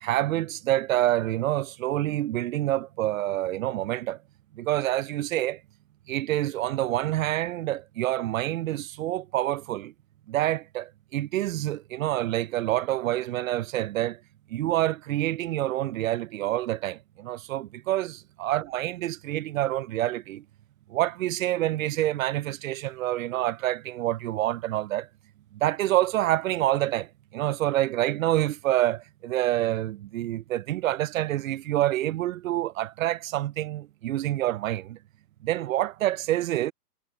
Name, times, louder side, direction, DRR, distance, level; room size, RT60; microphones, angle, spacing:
voice 1, 0.0-4.2 4.6-5.6 6.1-9.9 10.3-14.2 14.5-20.4 20.9-25.1 25.6-27.1 27.3-35.0 35.4-36.7, right 14 dB, 55° right, 0.7 m, -27 dB
hypercardioid pair, 155°, 48 cm